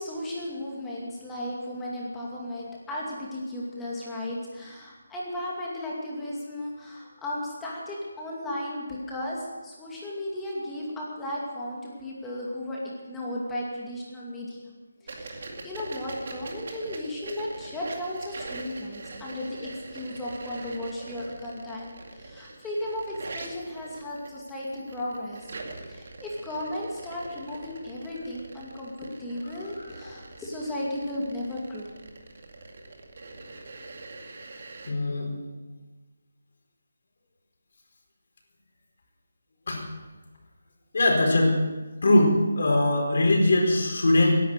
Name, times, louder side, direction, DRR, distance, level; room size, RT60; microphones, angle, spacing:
voice 1, 0.0-12.8 13.1-14.7 15.0-25.5 25.9-31.9, left 1 dB, 5° left, -5 dB, 2.4 m, -35 dB
sound 1, 15.1-34.9, right 3 dB, 50° right, 2.2 m, -43 dB
voice 2, 34.9-35.3 39.7-39.8 40.9-41.6 42.0-44.4, left 1 dB, 60° left, 0 dB, 4.5 m, -21 dB
16.5 x 10.5 x 6.7 m, 1.2 s
figure-of-eight pair, 170°, 0 cm